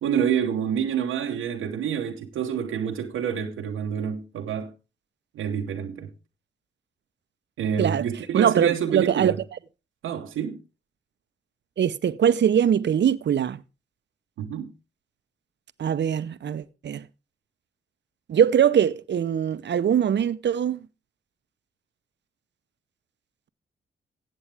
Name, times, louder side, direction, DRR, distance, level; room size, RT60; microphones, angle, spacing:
voice 1, 0.0-4.7 5.3-6.1 7.6-9.4 10.0-10.6 14.4-14.7, right 8 dB, 90° right, 1.0 m, -27 dB
voice 2, 8.3-9.3 11.8-13.6 15.8-17.1 18.3-20.8, right 9 dB, 60° right, 0.7 m, -22 dB
15.0 x 7.9 x 3.4 m
supercardioid pair, 50°, 21 cm